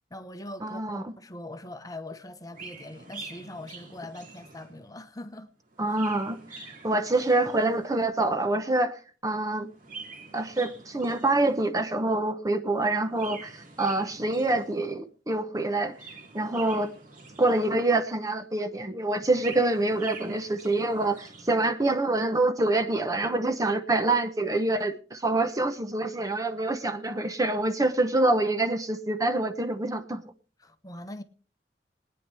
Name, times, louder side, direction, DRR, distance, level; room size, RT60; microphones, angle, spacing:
voice 1, 0.1-5.5 5.9-6.0 30.6-31.2, left 1 dB, 20° left, 0.9 m, -42 dB
voice 2, 0.6-1.1 5.8-9.7 10.3-15.9 16.3-16.9 17.4-30.2, right 2 dB, 20° right, 0.8 m, -26 dB
Chirp tweet, 2.5-5.0 5.7-8.1 9.6-11.8 13.1-15.0 15.8-18.0 19.1-21.6, right 4 dB, 50° right, 2.5 m, -46 dB
21.5 x 9.7 x 3.4 m
head